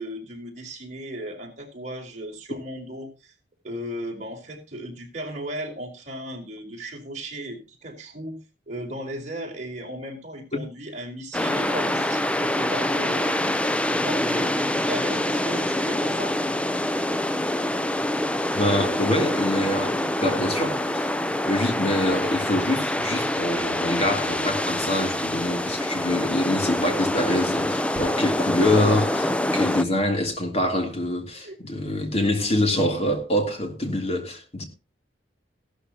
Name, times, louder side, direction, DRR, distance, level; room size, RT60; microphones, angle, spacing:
voice 1, 0.0-3.3 3.6-8.4 8.7-13.5 13.9-16.4 31.3-31.6, right 1 dB, 40° right, 4.6 m, -36 dB
sound 1, 11.3-29.8, left 1 dB, 5° left, 0.6 m, -25 dB
voice 2, 18.5-21.1 21.5-34.6, left 1 dB, 35° left, 3.2 m, -25 dB
16.0 x 13.0 x 3.0 m
head